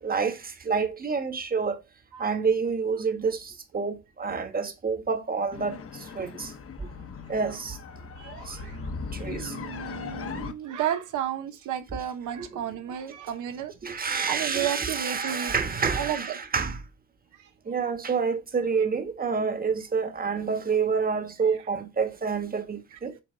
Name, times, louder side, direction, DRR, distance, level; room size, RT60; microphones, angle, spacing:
voice 1, 0.0-1.8 2.2-6.5 7.3-7.8 8.4-8.6 9.1-9.6 12.4-12.6 13.8-16.8 17.6-23.1, right 5 dB, 30° right, 1.3 m, -28 dB
sound 1, 5.5-10.5, left 5 dB, 50° left, 1.1 m, -38 dB
voice 2, 8.2-8.8 9.2-15.5 16.0-16.4 17.3-17.5 22.9-23.2, right 10 dB, 80° right, 1.0 m, -33 dB
7.8 x 3.1 x 3.9 m
cardioid pair, 90°, 30 cm